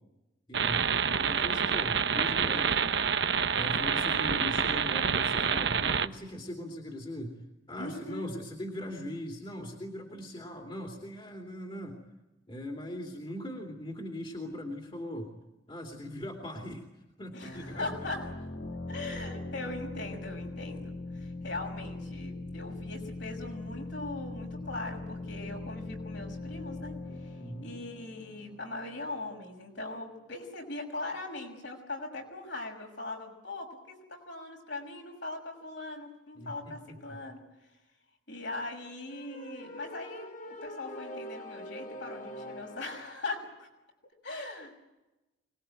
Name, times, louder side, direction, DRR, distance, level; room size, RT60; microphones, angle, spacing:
voice 1, 0.5-3.0 3.5-7.3 7.7-12.0 12.5-15.3 15.7-16.8 17.2-17.9 27.4-27.7 36.3-37.2, left 1 dB, 25° left, 2 dB, 2.9 m, -40 dB
sound 1, 0.5-6.1, right 6 dB, 60° right, 0.9 m, -27 dB
voice 2, 7.8-8.3 17.3-18.3 18.9-37.4 38.3-43.7 44.2-44.7, left 2 dB, 65° left, 1 dB, 6.4 m, -40 dB
sound 2, 17.4-28.9, left 2 dB, 80° left, 2.5 m, -41 dB
sound 3, 39.1-43.1, equal, 40° left, 2.3 m, -43 dB
25.0 x 20.5 x 9.2 m, 1.0 s
head